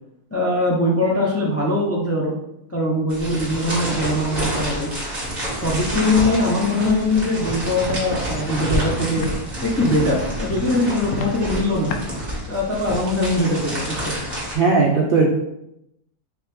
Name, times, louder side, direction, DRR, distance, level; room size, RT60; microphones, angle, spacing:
voice 1, 0.3-2.3 2.7-4.9 5.6-9.3 9.6-11.9 12.5-14.1, left 1 dB, 25° left, -3 dB, 0.3 m, -21 dB
sound 1, 3.1-14.5, equal, 30° right, 1.6 m, -28 dB
Walk footsteps, 7.2-7.3 7.8-8.0 8.5-8.6 9.2-9.3 9.8-10.0 10.5-10.7 11.1-11.3 11.9-12.0, left 3 dB, 75° left, 1.0 m, -30 dB
voice 2, 14.5-15.4, right 4 dB, 70° right, -1 dB, 0.5 m, -17 dB
4.3 x 3.2 x 3.3 m, 0.82 s
omnidirectional pair, 1.6 m